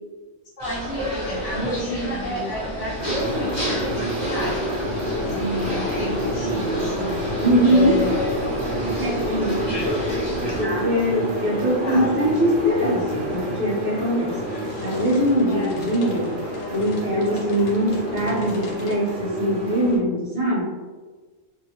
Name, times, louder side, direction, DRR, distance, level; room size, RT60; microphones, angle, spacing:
voice 1, 0.6-4.6 5.2-7.2 7.6-8.2 9.0-9.8 10.6-10.9 11.8-12.1 15.5-15.7, equal, 45° left, -9 dB, 1.0 m, -30 dB
sound 1, 0.6-10.7, equal, 20° left, 1.0 m, -32 dB
sound 2, 1.3-19.0, left 1 dB, 90° left, 1.0 m, -36 dB
sound 3, 3.0-20.0, right 1 dB, 85° right, 1.1 m, -29 dB
voice 2, 7.4-8.0 8.8-9.6 10.5-16.4 16.7-20.6, equal, 25° right, -8 dB, 1.2 m, -22 dB
2.7 x 2.4 x 2.9 m, 1.4 s
omnidirectional pair, 1.3 m